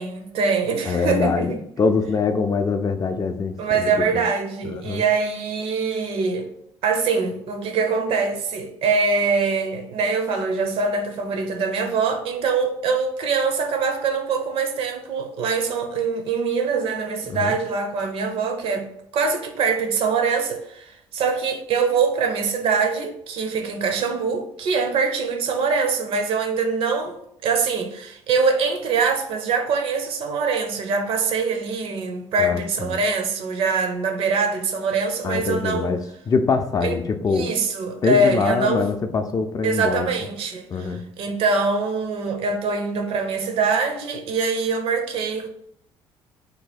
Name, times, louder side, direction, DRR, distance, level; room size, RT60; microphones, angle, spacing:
voice 1, 0.0-1.6 3.6-6.5 6.8-35.9 36.8-37.0 37.3-38.9 39.6-45.5, right 4 dB, 70° right, 0.6 m, -23 dB
voice 2, 0.9-4.2 4.6-5.0 17.3-17.6 32.4-33.0 35.2-37.5 38.0-40.1 40.7-41.1, left 4 dB, 35° left, 0.4 m, -24 dB
2.8 x 2.2 x 4.1 m
supercardioid pair, 75°, 10 cm